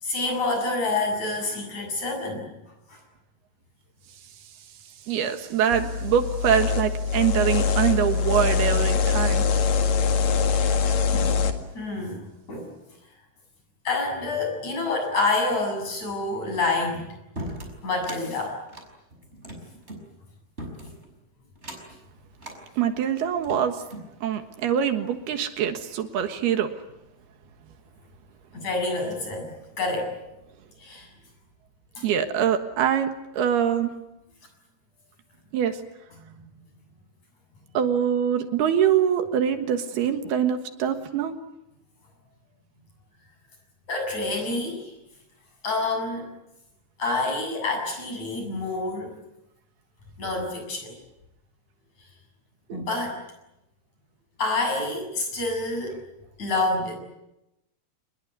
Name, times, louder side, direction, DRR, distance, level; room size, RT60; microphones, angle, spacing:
voice 1, 0.0-2.5 2.9-3.0 11.1-12.7 13.9-17.2 17.8-18.6 28.5-30.2 30.8-31.1 32.0-32.1 36.2-36.5 43.9-44.9 45.6-46.3 47.0-49.1 50.2-50.9 52.7-53.2 54.4-56.0 56.4-56.9, left 2 dB, 45° left, 4 dB, 8.6 m, -28 dB
voice 2, 5.1-9.5 22.8-23.8 24.2-26.7 32.0-33.9 35.5-35.8 37.8-41.4 52.7-52.9, right 9 dB, 75° right, 7 dB, 3.4 m, -24 dB
sound 1, 5.7-11.5, left 5 dB, 60° left, 3.4 m, -23 dB
sound 2, 17.4-18.2 18.7-20.0 20.6-21.1 21.6-22.0 22.4-22.6 23.2-24.1, right 1 dB, 15° right, 5.8 m, -38 dB
27.0 x 21.5 x 9.6 m, 0.92 s
omnidirectional pair, 4.7 m